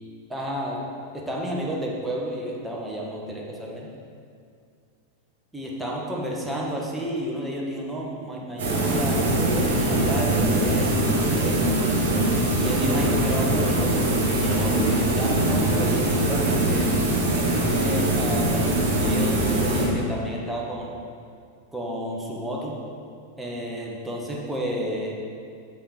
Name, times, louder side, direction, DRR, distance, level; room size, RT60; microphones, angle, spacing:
voice 1, 0.3-0.8 1.1-3.9 5.5-11.7 12.6-17.0 17.4-20.9 21.7-22.8 23.4-25.2, equal, 5° right, -3 dB, 1.3 m, -31 dB
sound 1, 8.6-20.2, right 1 dB, 60° right, 1.8 m, -22 dB
6.6 x 5.6 x 4.4 m, 2.3 s
figure-of-eight pair, 90°, 0 cm